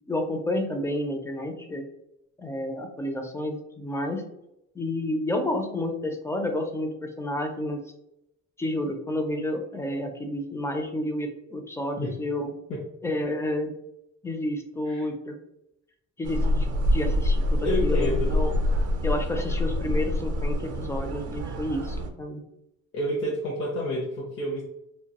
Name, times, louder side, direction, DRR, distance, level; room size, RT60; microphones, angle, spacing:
voice 1, 0.1-1.8 2.4-4.2 4.7-7.8 8.6-12.5 13.0-13.7 14.2-15.4 16.2-18.5 19.0-22.4, left 1 dB, 10° left, 4 dB, 0.4 m, -30 dB
sound 1, 16.2-22.1, left 1 dB, 55° right, 0.5 m, -26 dB
voice 2, 17.6-18.3 22.9-24.6, left 1 dB, 45° left, -4 dB, 0.7 m, -29 dB
2.2 x 2.2 x 2.8 m, 0.82 s
cardioid pair, 90°, 30 cm